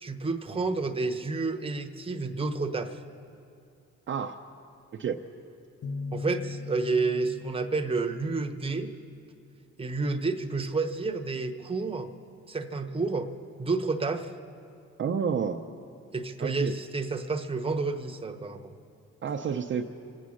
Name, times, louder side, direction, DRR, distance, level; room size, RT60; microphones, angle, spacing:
voice 1, 0.0-3.0 6.1-8.9 9.8-12.1 12.5-13.3 13.6-14.3 16.1-18.7, right 3 dB, 20° right, 5 dB, 1.0 m, -30 dB
voice 2, 4.1-4.4 5.0-5.2 15.0-15.6 16.4-16.7 19.2-19.8, right 7 dB, 40° right, 2 dB, 0.6 m, -29 dB
sound 1, 5.8-9.5, left 3 dB, 50° left, 1.0 m, -40 dB
25.5 x 8.5 x 6.4 m, 2.6 s
cardioid pair, 90°, 30 cm